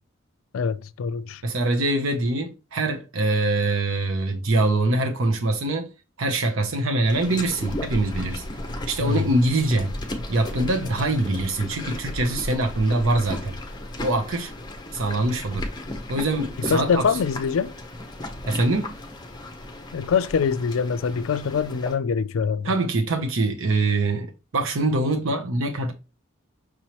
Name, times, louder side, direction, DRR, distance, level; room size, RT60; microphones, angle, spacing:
voice 1, 0.5-1.4 9.0-9.2 16.6-17.7 19.9-22.7, left 6 dB, 75° left, 0.4 m, -24 dB
voice 2, 1.4-5.9 6.2-8.4 8.9-9.9 10.3-13.6 14.0-14.5 14.9-15.7 16.1-17.1 18.5-18.9 22.6-25.9, right 2 dB, 75° right, 0.7 m, -24 dB
sound 1, 7.1-22.0, left 1 dB, 20° left, 0.7 m, -35 dB
6.1 x 3.0 x 2.9 m
head